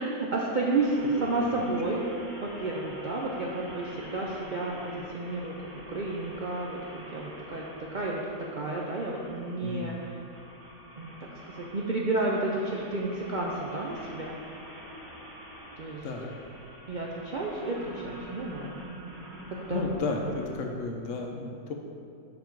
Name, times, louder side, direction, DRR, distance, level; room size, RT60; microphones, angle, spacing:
voice 1, 0.0-2.0 2.4-6.8 7.1-10.1 11.0-14.4 15.8-16.1 16.9-18.9 19.5-19.9, right 2 dB, 85° right, -2 dB, 0.4 m, -31 dB
sound 1, 0.7-20.5, equal, 60° right, 2.2 m, -46 dB
voice 2, 1.4-1.7 9.6-10.0 16.0-16.3 19.7-21.7, left 3 dB, 65° left, 2 dB, 0.9 m, -33 dB
7.0 x 5.2 x 4.5 m, 2.5 s
omnidirectional pair, 1.6 m